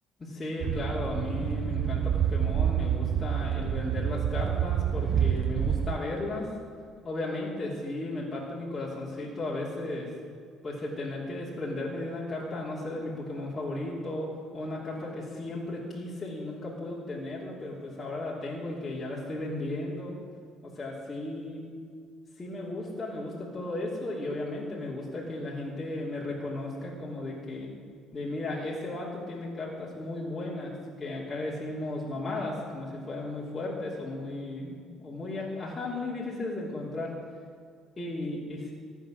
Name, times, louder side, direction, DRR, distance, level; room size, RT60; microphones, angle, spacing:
voice 1, 0.2-6.5 7.0-10.1 10.6-14.3 14.5-20.2 20.6-21.6 22.4-27.7 28.1-37.1 38.0-38.7, left 2 dB, 25° left, -7 dB, 2.8 m, -35 dB
sound 1, 0.6-6.0, right 9 dB, 55° right, 0.4 m, -28 dB
14.5 x 8.3 x 6.4 m, 2.2 s
cardioid pair, 100°, 0 cm